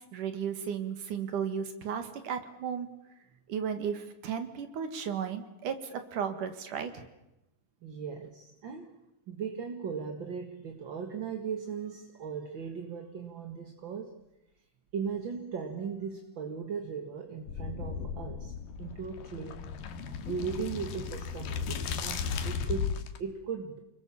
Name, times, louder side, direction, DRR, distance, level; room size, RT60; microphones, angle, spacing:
voice 1, 0.1-2.9 3.5-7.0, right 7 dB, 70° right, 9 dB, 3.4 m, -34 dB
voice 2, 7.8-9.0 9.3-14.2 14.9-18.5 18.8-19.7 20.3-23.8, right 6 dB, 45° right, 4 dB, 2.0 m, -38 dB
sound 1, 17.5-23.2, left 6 dB, 80° left, 3.2 m, -35 dB
30.0 x 21.0 x 7.2 m, 0.90 s
omnidirectional pair, 3.9 m